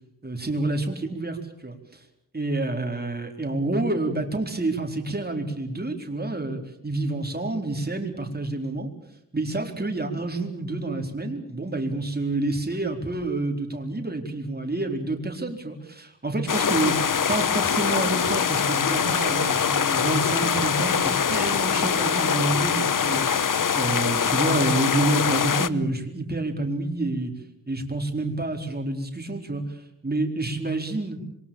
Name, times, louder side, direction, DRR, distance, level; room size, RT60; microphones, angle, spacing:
voice 1, 0.2-2.0 2.3-8.9 9.3-23.4 23.7-27.3 27.7-29.8 30.0-31.2, right 2 dB, 25° right, 4 dB, 4.3 m, -28 dB
sound 1, 16.5-25.7, left 7 dB, 60° left, 1.0 m, -23 dB
27.5 x 23.0 x 7.2 m, 0.75 s
wide cardioid pair, 105°, 36 cm